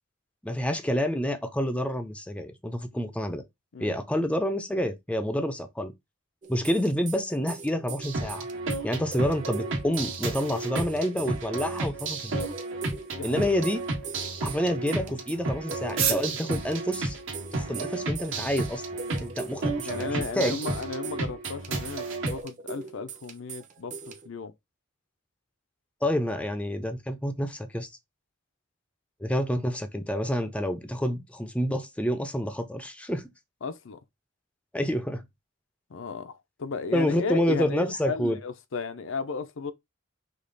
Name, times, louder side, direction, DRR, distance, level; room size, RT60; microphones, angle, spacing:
voice 1, 0.4-3.4 3.8-5.9 6.5-8.5 8.8-12.4 13.2-13.8 14.4-17.2 17.5-18.8 19.2-20.6 26.0-27.9 29.2-33.3 34.7-35.2 36.9-38.4, equal, 5° left, 0.5 m, -28 dB
sound 1, 6.4-24.3, right 5 dB, 40° right, 0.9 m, -41 dB
sound 2, 8.0-22.4, right 2 dB, 65° right, 1.4 m, -33 dB
voice 2, 13.1-13.5 19.9-24.5 33.6-34.0 35.9-39.7, left 4 dB, 65° left, 0.6 m, -34 dB
sound 3, 13.2-20.2, right 9 dB, 85° right, 1.4 m, -38 dB
5.2 x 2.4 x 3.9 m
head